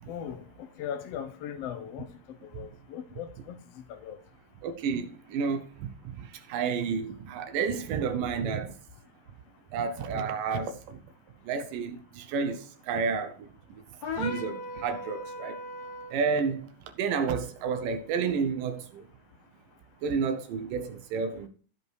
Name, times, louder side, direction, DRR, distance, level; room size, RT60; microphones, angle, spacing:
voice 1, 0.1-3.6 3.9-4.2, left 9 dB, 65° left, 1.7 m, -39 dB
voice 2, 4.6-8.7 9.7-11.0 11.5-13.5 14.2-15.6 16.1-16.7 17.0-19.0 20.0-21.5, right 5 dB, 85° right, 2.5 m, -30 dB
sound 1, 14.0-16.2, left 2 dB, 85° left, 0.8 m, -37 dB
14.0 x 5.3 x 4.7 m
omnidirectional pair, 3.8 m